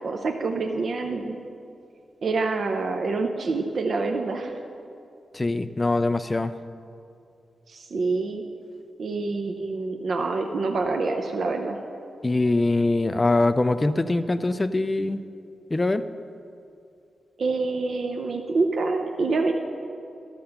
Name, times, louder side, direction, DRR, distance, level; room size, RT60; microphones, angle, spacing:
voice 1, 0.0-1.4 2.2-4.5 7.7-8.4 9.0-11.8 17.4-19.5, right 3 dB, 50° right, 3 dB, 0.5 m, -26 dB
voice 2, 5.3-6.5 12.2-15.2 15.7-16.0, left 2 dB, 15° left, 11 dB, 0.3 m, -23 dB
12.0 x 6.5 x 5.7 m, 2.5 s
wide cardioid pair, 170°, 0 cm